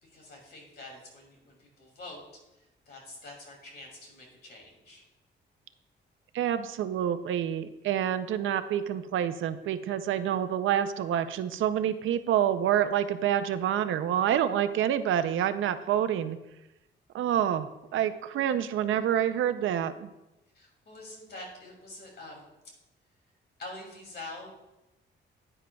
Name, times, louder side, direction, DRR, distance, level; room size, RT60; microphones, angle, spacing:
voice 1, 0.0-2.2 2.5-5.0 20.5-22.5 23.6-24.5, left 2 dB, 55° left, 0 dB, 2.6 m, -46 dB
voice 2, 6.3-16.4 17.1-20.1, right 10 dB, 80° right, 11 dB, 0.5 m, -27 dB
10.0 x 9.7 x 2.3 m, 0.95 s
wide cardioid pair, 170°, 20 cm